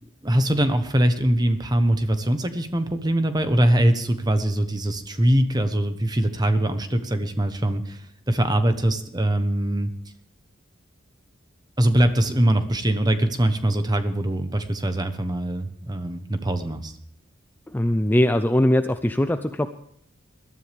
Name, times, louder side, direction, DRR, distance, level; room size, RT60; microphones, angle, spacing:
voice 1, 0.2-9.9 11.8-17.0, right 1 dB, 20° right, 9 dB, 1.1 m, -22 dB
voice 2, 17.7-19.7, left 1 dB, 10° left, 9 dB, 0.5 m, -21 dB
20.5 x 13.0 x 3.5 m, 0.67 s
head